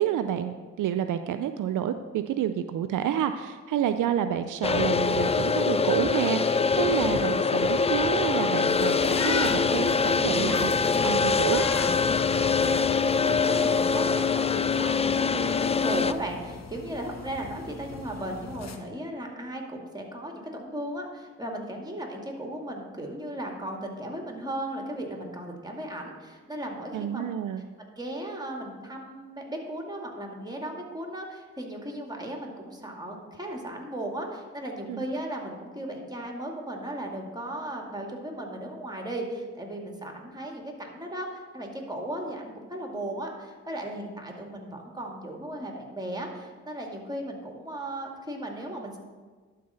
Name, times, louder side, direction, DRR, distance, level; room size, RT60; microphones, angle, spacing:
voice 1, 0.0-11.6 26.9-27.6 34.9-35.0, right 10 dB, 75° right, 10 dB, 0.5 m, -29 dB
sound 1, 4.6-16.1, left 5 dB, 20° left, 0.3 m, -24 dB
sound 2, 8.7-18.8, left 5 dB, 55° left, 0.9 m, -39 dB
voice 2, 12.1-27.2 28.0-49.0, right 1 dB, 15° right, 1 dB, 2.2 m, -36 dB
12.0 x 4.0 x 5.6 m, 1.4 s
supercardioid pair, 40°, 31 cm